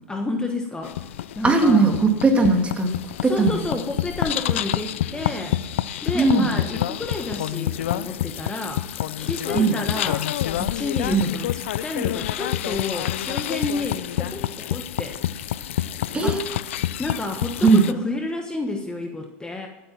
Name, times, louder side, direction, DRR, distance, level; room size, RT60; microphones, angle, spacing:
voice 1, 0.1-1.0 1.3-1.9 3.2-5.6 6.0-8.9 9.2-10.3 10.6-15.2 16.2-16.4 17.0-19.7, left 2 dB, 10° left, 4 dB, 1.3 m, -30 dB
sound 1, 0.8-17.9, left 12 dB, 85° left, 0.6 m, -28 dB
voice 2, 1.4-2.9 3.2-3.7 6.1-6.5 9.5-9.8 11.1-11.3 16.1-16.4 17.6-17.8, right 3 dB, 20° right, 4 dB, 2.3 m, -18 dB
14.5 x 8.7 x 5.9 m, 1.1 s
supercardioid pair, 110°, 7 cm